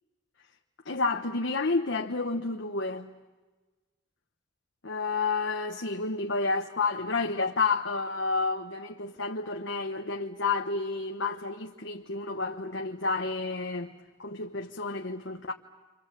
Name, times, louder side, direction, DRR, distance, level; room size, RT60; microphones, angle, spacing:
voice 1, 0.8-3.1 4.8-13.9 14.2-15.5, left 3 dB, 75° left, 1.2 m, -30 dB
29.5 x 26.0 x 7.5 m
head